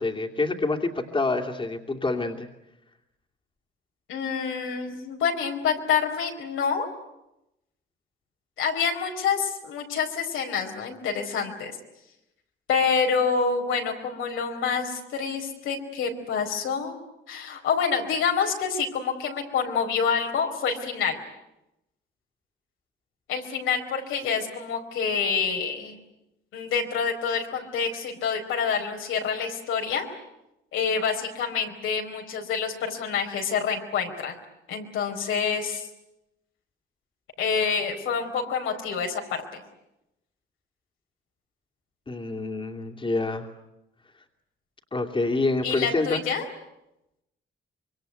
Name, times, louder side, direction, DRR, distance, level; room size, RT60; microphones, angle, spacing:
voice 1, 0.0-2.5 42.1-43.5 44.9-46.2, left 3 dB, 25° left, 2 dB, 2.8 m, -27 dB
voice 2, 4.1-6.9 8.6-11.7 12.7-17.0 17.3-21.2 23.3-26.0 26.5-30.1 30.7-34.4 34.7-35.9 37.4-39.6 45.6-46.5, left 6 dB, 85° left, 2 dB, 4.6 m, -27 dB
26.0 x 23.0 x 9.4 m, 0.87 s
cardioid pair, 90°, 20 cm